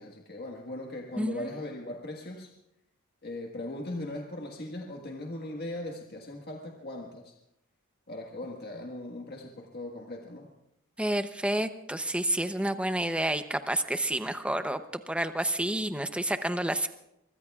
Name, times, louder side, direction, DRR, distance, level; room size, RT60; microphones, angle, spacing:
voice 1, 0.0-2.5 3.2-7.3 8.1-10.5, left 1 dB, 45° left, 0 dB, 1.6 m, -39 dB
voice 2, 11.0-16.9, right 1 dB, 5° right, 8 dB, 0.7 m, -29 dB
24.0 x 23.5 x 2.4 m, 0.82 s
head